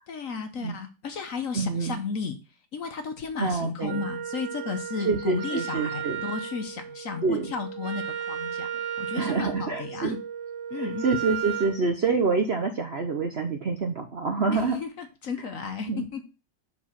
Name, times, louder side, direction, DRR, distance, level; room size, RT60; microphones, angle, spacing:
voice 1, 0.1-2.4 2.7-8.7 9.0-10.2 10.7-11.0 14.5-16.2, left 5 dB, 55° left, 7 dB, 1.2 m, -34 dB
voice 2, 1.5-2.0 3.4-4.0 5.0-6.2 7.2-7.5 9.2-10.2 10.7-14.8 15.9-16.1, right 4 dB, 50° right, 5 dB, 0.8 m, -27 dB
Wind instrument woodwind instrument, 3.8-11.8, right 8 dB, 75° right, 1.6 m, -35 dB
7.4 x 4.7 x 5.8 m, 0.32 s
omnidirectional pair, 2.0 m